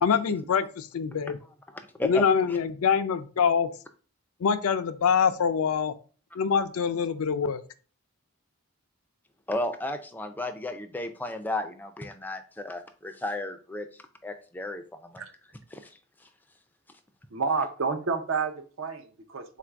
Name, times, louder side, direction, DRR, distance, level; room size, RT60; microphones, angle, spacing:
voice 1, 0.0-1.4 2.0-3.7 4.4-5.9 6.3-7.6, left 6 dB, 75° left, 10 dB, 0.4 m, -25 dB
voice 2, 9.5-13.9 14.2-15.2 15.7-15.8, left 2 dB, 10° left, 6 dB, 0.4 m, -33 dB
voice 3, 17.3-19.6, right 4 dB, 60° right, 7 dB, 0.6 m, -30 dB
3.9 x 2.5 x 4.4 m, 0.39 s
head